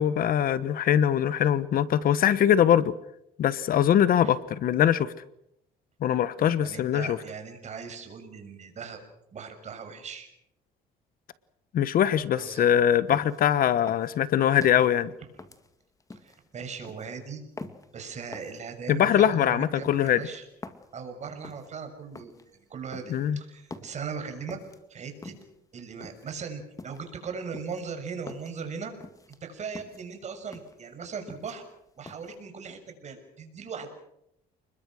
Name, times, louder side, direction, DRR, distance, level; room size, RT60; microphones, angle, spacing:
voice 1, 0.0-2.9 3.4-5.1 6.0-7.2 11.7-15.1 18.9-20.2 23.1-23.4, left 10 dB, 60° left, 16 dB, 1.2 m, -22 dB
voice 2, 6.6-9.0 9.3-10.3 12.4-12.7 16.1-17.4 17.9-20.5 20.9-24.6 24.9-25.3 25.7-28.9 29.4-31.6 32.0-33.9, right 5 dB, 45° right, 6 dB, 6.5 m, -39 dB
sound 1, 13.1-13.5 13.9-14.9 15.4-16.4 16.8-17.1 17.6-17.9 18.3-18.6 19.0-19.3 19.8-20.9 21.4-21.7 22.1-22.5 22.9-23.3 23.7-24.0 24.5-24.8 25.2-25.6 26.0-26.3 26.8-27.1 27.5-28.6 29.0-29.4 29.7-30.1 30.5-30.8 31.1-31.7 32.1-32.3, left 3 dB, 20° left, 2.3 m, -45 dB
30.0 x 21.5 x 6.4 m, 0.80 s
cardioid pair, 110°, 17 cm